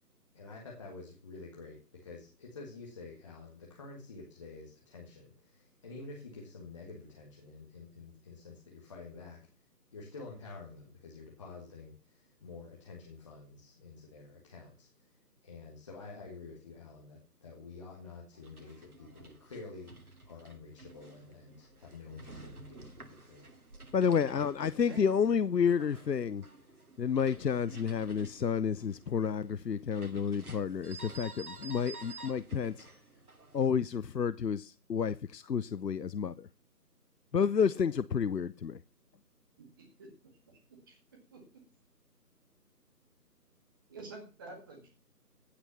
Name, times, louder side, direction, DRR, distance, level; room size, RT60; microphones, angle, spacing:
voice 1, 0.3-9.4 9.9-15.1 15.4-23.5, left 3 dB, 20° left, 1.8 m, -49 dB
sound 1, 18.3-33.7, right 3 dB, 60° right, 2.7 m, -52 dB
voice 2, 23.9-26.4 27.0-32.9 33.5-36.5 37.3-38.8, left 6 dB, 80° left, 0.8 m, -30 dB
voice 3, 39.8-40.1 40.4-40.6 40.9-41.0 41.3-41.4 43.9-44.9, right 3 dB, 15° right, 1.7 m, -48 dB
16.0 x 6.1 x 5.6 m
figure-of-eight pair, 160°, 49 cm